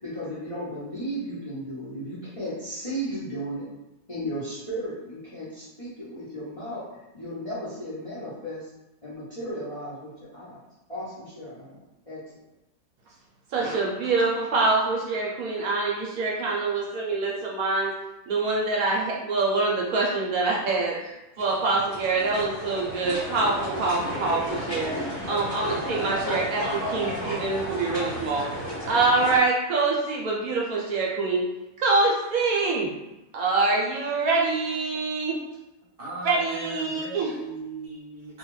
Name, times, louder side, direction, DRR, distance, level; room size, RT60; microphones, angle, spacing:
voice 1, 0.0-3.7 4.1-6.8 7.1-8.6 9.0-10.6 10.9-11.8 12.1-12.2, equal, 30° left, -11 dB, 0.8 m, -35 dB
voice 2, 13.5-17.9 18.3-25.0 25.3-31.4 31.8-32.9 33.3-35.4 36.2-37.3, right 3 dB, 70° right, -3 dB, 1.0 m, -25 dB
sound 1, 21.4-29.4, equal, 60° left, 1.5 m, -33 dB
voice 3, 36.0-38.4, right 2 dB, 20° right, -8 dB, 0.7 m, -38 dB
2.7 x 2.4 x 3.1 m, 0.97 s
omnidirectional pair, 1.6 m